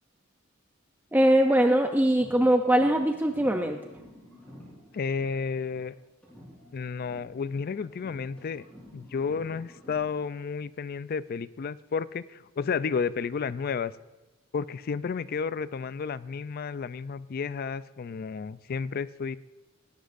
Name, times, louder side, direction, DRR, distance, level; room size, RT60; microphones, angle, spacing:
voice 1, 1.1-3.8, right 1 dB, 10° right, 5 dB, 0.5 m, -22 dB
sound 1, 2.1-5.9 6.2-10.2, equal, 5° left, 3.9 m, -51 dB
voice 2, 4.9-5.9 6.7-8.6 8.9-13.9 14.5-19.4, left 5 dB, 45° left, 16 dB, 0.4 m, -32 dB
19.5 x 11.5 x 2.5 m, 1.1 s
head